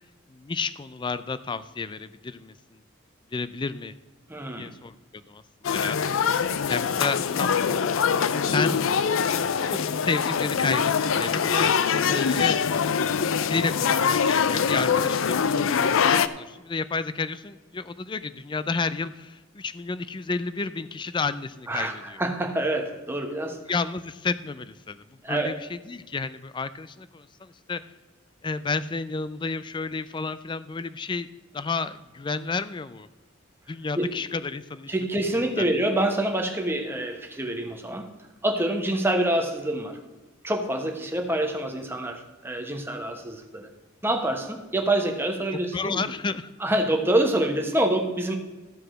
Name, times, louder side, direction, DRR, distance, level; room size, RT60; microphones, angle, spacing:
voice 1, 0.3-2.8 3.3-3.9 4.6-5.0 5.3-5.4 5.7-6.0 6.7-7.6 8.5-8.9 9.6-12.6 13.4-15.7 16.1-22.2 23.7-27.8 28.4-31.3 31.5-33.1 33.7-34.9 35.6-35.7 45.7-46.5, left 4 dB, 25° left, 14 dB, 0.4 m, -31 dB
voice 2, 4.3-4.7 21.7-23.6 25.2-25.6 34.0-34.1 34.9-38.1 38.4-40.0 40.4-43.7 44.0-46.0 46.6-48.4, right 1 dB, 10° right, 3 dB, 1.1 m, -26 dB
sound 1, 5.6-16.3, left 6 dB, 80° left, 0.5 m, -23 dB
14.0 x 4.8 x 6.3 m, 1.2 s
head